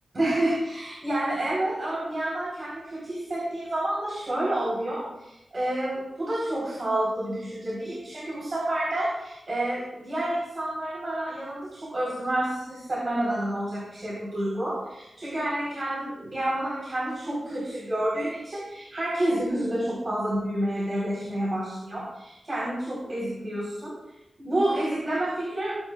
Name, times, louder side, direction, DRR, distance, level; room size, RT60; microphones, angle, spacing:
voice 1, 0.1-24.0 24.4-25.8, right 1 dB, 40° right, -7 dB, 4.8 m, -29 dB
20.5 x 10.0 x 2.6 m, 0.91 s
wide cardioid pair, 115°, 0 cm